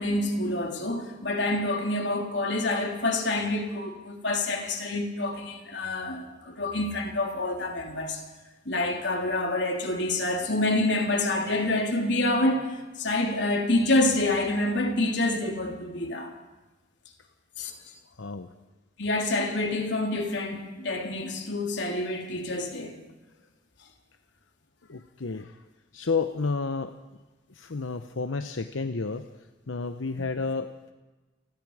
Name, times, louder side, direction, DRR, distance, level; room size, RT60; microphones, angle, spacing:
voice 1, 0.0-8.2 8.7-16.3 17.6-18.0 19.0-23.0, left 2 dB, 65° left, 3.5 m, -27 dB
voice 2, 18.2-18.5 24.9-25.6 25.9-26.9 27.5-29.3 29.7-30.9, left 4 dB, 90° left, 0.9 m, -31 dB
29.0 x 20.0 x 4.9 m
head